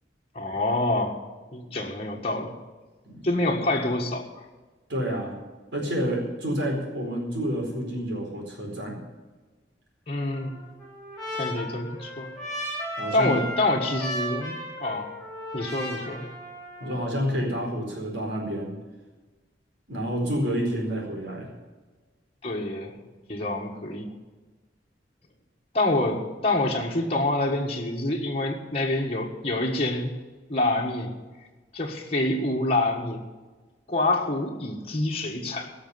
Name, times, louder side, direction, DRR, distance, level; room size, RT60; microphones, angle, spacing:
voice 1, 0.3-1.2 1.5-2.5 3.2-4.3 10.1-10.6 11.3-12.3 13.1-14.5 14.8-15.1 15.5-16.3 22.4-22.9 23.3-24.1 25.7-30.1 30.5-31.1 31.7-33.2 33.9-35.7, left 2 dB, 35° left, -1 dB, 1.6 m, -26 dB
voice 2, 4.9-5.4 5.7-9.0 13.0-13.3 16.8-18.7 19.9-21.5, equal, 65° right, 0 dB, 4.6 m, -29 dB
Trumpet, 10.3-17.1, equal, 5° left, 4.9 m, -35 dB
17.0 x 6.6 x 9.6 m, 1.3 s
head